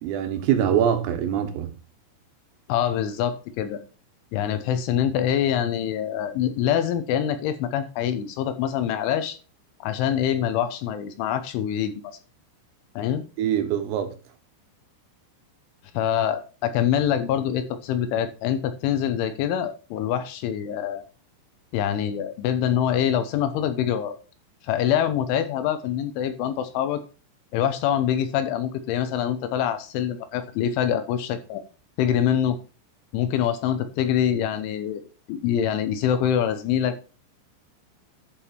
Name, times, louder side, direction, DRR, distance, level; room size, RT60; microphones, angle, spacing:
voice 1, 0.0-1.7 13.4-14.1, right 9 dB, 80° right, 3.8 m, -23 dB
voice 2, 2.7-3.8 4.3-9.4 9.8-12.1 13.0-13.2 15.9-21.0 21.7-24.2 24.6-27.0 27.5-31.6 32.0-32.6 33.1-35.0 35.3-37.0, left 9 dB, 80° left, 3.1 m, -25 dB
11.0 x 5.3 x 4.4 m
omnidirectional pair, 5.9 m